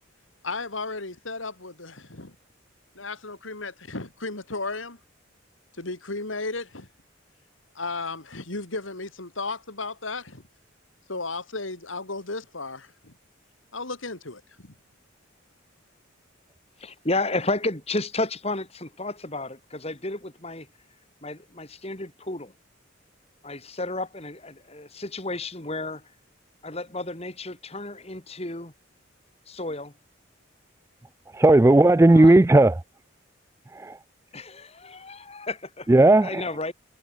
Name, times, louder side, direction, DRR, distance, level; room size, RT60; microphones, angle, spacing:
voice 1, 0.4-2.3 2.9-5.0 5.8-6.9 7.7-10.4 11.1-13.1 13.7-14.7, left 3 dB, 80° left, 3.2 m, -34 dB
voice 2, 16.8-20.7 21.2-22.5 23.4-26.1 26.6-28.7 29.5-29.9 32.1-32.4 34.3-36.7, left 2 dB, 30° left, 3.2 m, -32 dB
voice 3, 31.3-32.8 33.8-34.0 35.9-36.4, right 2 dB, 15° right, 0.3 m, -15 dB
head